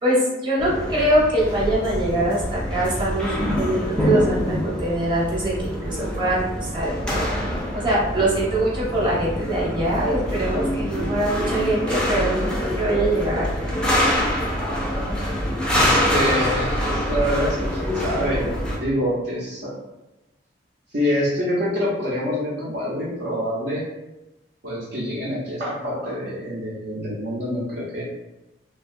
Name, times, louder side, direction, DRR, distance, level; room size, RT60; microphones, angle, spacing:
voice 1, 0.0-7.2 7.7-12.5 12.8-13.7, right 1 dB, 25° right, -6 dB, 0.8 m, -23 dB
sound 1, 0.6-18.8, equal, 5° left, 0.4 m, -25 dB
voice 2, 15.7-18.5 18.7-19.7 20.9-23.8 24.6-28.0, equal, 70° right, -8 dB, 0.6 m, -26 dB
3.2 x 2.3 x 2.5 m, 0.99 s
head